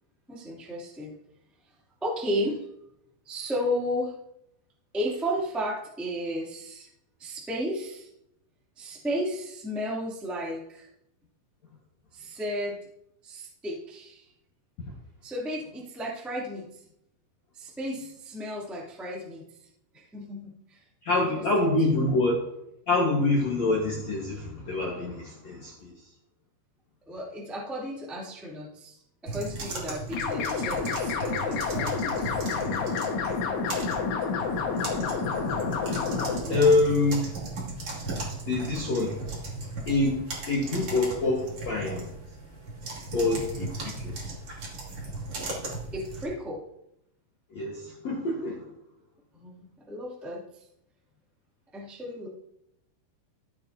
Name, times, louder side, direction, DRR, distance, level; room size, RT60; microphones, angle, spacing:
voice 1, 0.3-1.1 2.0-2.6 3.2-4.1 4.9-6.9 7.2-8.1 8.7-10.9 12.1-12.8 13.2-14.3 15.2-16.7 17.5-19.4 19.9-20.8 21.3-21.7 27.0-29.0 29.2-32.4 36.4-36.7 45.9-46.6 49.3-50.6 51.7-52.3, equal, ahead, -5 dB, 0.6 m, -33 dB
voice 2, 21.0-22.4 22.9-25.9 36.5-37.2 38.5-39.2 39.9-42.1 42.9-44.1 47.5-48.6, left 2 dB, 90° left, -2 dB, 1.5 m, -26 dB
sound 1, 29.3-46.2, right 2 dB, 35° right, 2.8 m, -37 dB
sound 2, 30.1-36.4, left 5 dB, 70° left, 3.7 m, -29 dB
17.0 x 8.6 x 2.8 m, 0.80 s
omnidirectional pair, 5.9 m